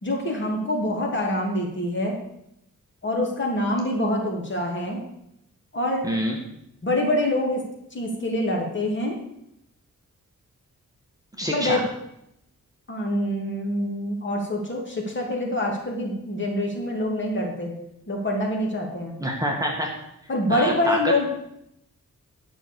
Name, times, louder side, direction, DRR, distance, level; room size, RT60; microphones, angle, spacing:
voice 1, 0.0-2.2 3.0-5.0 5.7-6.1 6.8-7.6 7.9-9.2 11.5-11.8 12.9-17.7 18.1-19.2 20.3-21.3, left 1 dB, 35° left, 0 dB, 2.7 m, -25 dB
voice 2, 6.0-6.4 11.4-11.8 19.2-19.9 20.5-21.1, equal, 10° right, -1 dB, 1.6 m, -26 dB
11.0 x 6.2 x 7.0 m, 0.79 s
wide cardioid pair, 130°, 32 cm